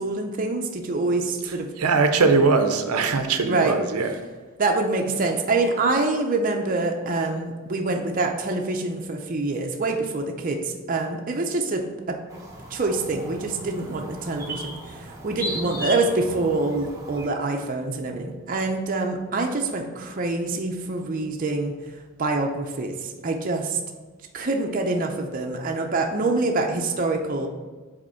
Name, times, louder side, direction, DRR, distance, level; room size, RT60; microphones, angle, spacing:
voice 1, 0.0-1.7 3.4-3.7 4.6-12.2 12.7-21.7 22.2-23.8 24.3-27.5, right 3 dB, 40° right, 2 dB, 0.5 m, -25 dB
voice 2, 1.4-4.2, right 4 dB, 90° right, 7 dB, 0.6 m, -21 dB
sound 1, 12.3-17.3, equal, 15° right, 0.8 m, -36 dB
5.2 x 4.3 x 5.6 m, 1.3 s
head